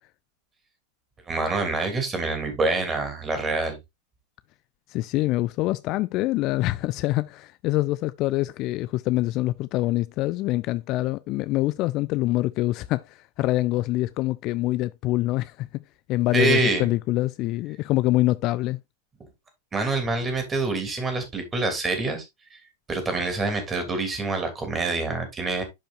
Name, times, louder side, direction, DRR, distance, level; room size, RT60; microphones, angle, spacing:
voice 1, 1.3-3.8 16.3-16.9 19.7-22.2 22.5-22.6 22.9-25.6, right 3 dB, 20° right, 3.2 m, -26 dB
voice 2, 4.9-15.8 16.1-18.8, left 17 dB, 40° left, 0.4 m, -25 dB
11.0 x 5.1 x 2.6 m
figure-of-eight pair, 90°, 0 cm